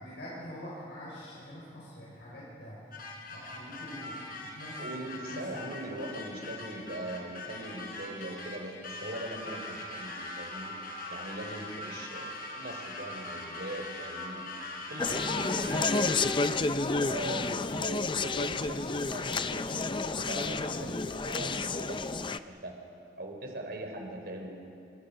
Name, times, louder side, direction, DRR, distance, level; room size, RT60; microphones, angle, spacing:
voice 1, 0.0-2.8 3.2-6.1, equal, 70° left, -7 dB, 6.3 m, -45 dB
sound 1, 2.9-16.6, left 2 dB, 55° left, 4.4 m, -41 dB
voice 2, 4.8-10.7 11.1-14.5 14.7-19.7 20.0-22.7 23.2-24.5, right 1 dB, 60° right, 2 dB, 4.5 m, -41 dB
Conversation, 15.0-22.4, left 3 dB, 25° left, 0.6 m, -30 dB
29.0 x 26.0 x 5.7 m, 2.5 s
head